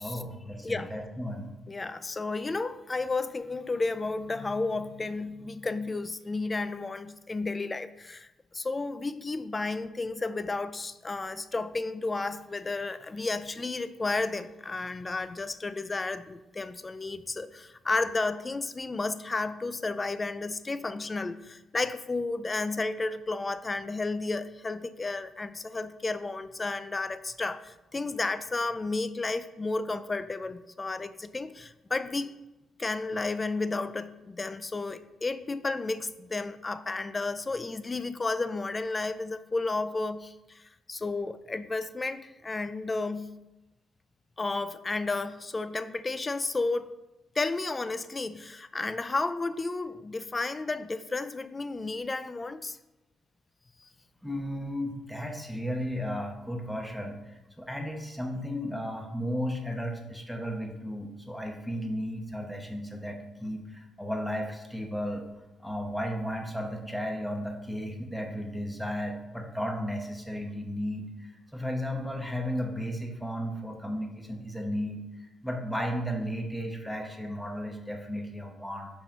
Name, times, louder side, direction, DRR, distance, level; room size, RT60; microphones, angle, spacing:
voice 1, 0.0-1.5 54.2-57.2 57.6-65.2 65.6-71.3 71.5-75.0 75.4-78.9, equal, ahead, 2 dB, 1.1 m, -34 dB
voice 2, 1.7-8.3 8.5-32.3 32.8-40.6 40.9-43.3 44.4-46.9 47.4-52.8, left 3 dB, 25° left, 13 dB, 0.4 m, -32 dB
5.5 x 4.4 x 5.3 m, 0.99 s
cardioid pair, 90°, 0 cm